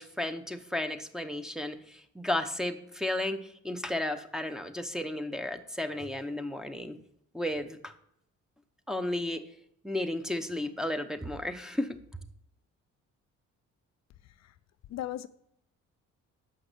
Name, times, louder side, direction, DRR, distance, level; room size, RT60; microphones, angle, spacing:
voice 1, 0.0-7.0 7.3-7.9 8.9-9.4 9.8-12.0, left 1 dB, ahead, 0.8 m, -33 dB
voice 2, 14.2-14.5 14.9-15.3, left 13 dB, 60° left, 0.5 m, -38 dB
7.2 x 5.8 x 6.7 m
cardioid pair, 90°, 30 cm